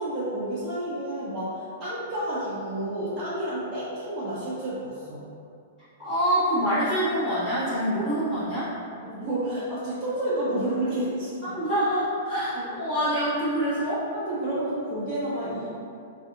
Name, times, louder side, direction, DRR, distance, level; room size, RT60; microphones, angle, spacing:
voice 1, 0.0-5.2 9.0-11.6 12.5-12.7 14.1-15.7, right 1 dB, 20° right, -12 dB, 0.8 m, -30 dB
voice 2, 6.0-8.7 11.5-14.1, equal, 25° left, -16 dB, 1.3 m, -25 dB
2.6 x 2.6 x 3.7 m, 2.4 s
hypercardioid pair, 140°, 0 cm